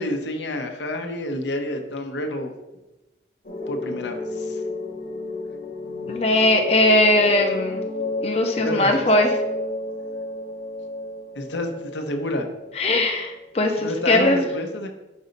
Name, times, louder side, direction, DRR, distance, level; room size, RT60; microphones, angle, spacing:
voice 1, 0.0-2.5 3.7-4.6 8.6-8.9 11.3-12.4 13.8-14.9, left 1 dB, 85° left, 4 dB, 0.8 m, -29 dB
sound 1, 3.4-13.6, left 2 dB, 55° left, 0.9 m, -31 dB
voice 2, 6.1-7.8 8.2-9.3 12.8-14.4, left 1 dB, 35° left, 3 dB, 0.5 m, -19 dB
5.4 x 4.0 x 5.2 m, 1.0 s
head